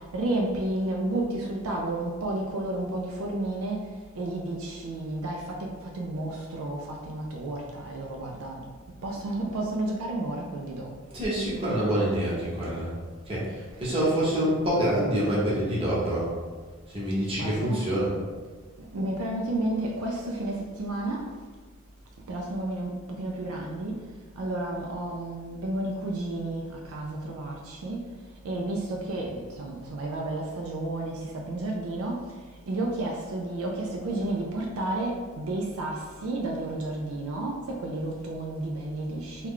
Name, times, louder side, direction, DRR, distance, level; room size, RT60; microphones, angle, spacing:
voice 1, 0.1-3.8 4.2-8.6 9.0-10.9 17.4-17.8 18.9-21.3 22.3-24.0 24.4-28.0 28.4-32.2 32.7-39.5, right 2 dB, 75° right, -1 dB, 0.4 m, -31 dB
voice 2, 11.1-12.9 13.3-13.4 13.8-16.3 16.9-18.1, right 1 dB, 25° right, -7 dB, 1.0 m, -26 dB
3.1 x 2.3 x 3.7 m, 1.4 s
head